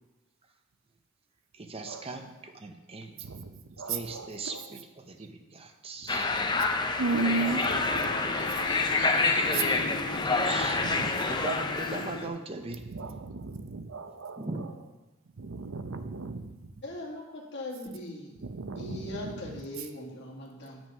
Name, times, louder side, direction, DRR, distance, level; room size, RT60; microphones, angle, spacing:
voice 1, 1.5-3.2 3.9-6.4 10.2-12.8 14.4-14.7, right 3 dB, 30° right, 6 dB, 0.7 m, -39 dB
sound 1, 6.1-12.2, left 3 dB, 20° left, 0.6 m, -28 dB
voice 2, 7.0-8.1 11.0-11.1 13.0-14.4 15.4-16.4 18.6-19.0, right 3 dB, 75° right, 9 dB, 0.7 m, -33 dB
sound 2, 7.2-12.3, left 2 dB, 85° left, 1.9 m, -39 dB
voice 3, 16.8-18.3 18.8-20.8, left 1 dB, 60° left, -3 dB, 2.1 m, -40 dB
9.2 x 6.0 x 5.4 m, 1.1 s
head